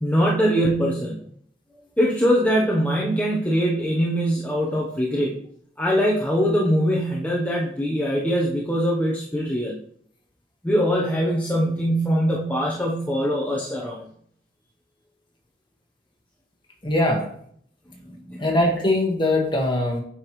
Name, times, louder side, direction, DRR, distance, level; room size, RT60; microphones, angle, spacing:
voice 1, 0.0-1.2 2.0-5.4 5.8-9.7 10.6-14.1 18.1-18.5, equal, 10° left, -4 dB, 0.9 m, -22 dB
voice 2, 16.8-17.2 18.4-20.0, left 1 dB, 25° left, 0 dB, 1.7 m, -21 dB
8.4 x 5.9 x 3.1 m, 0.64 s
head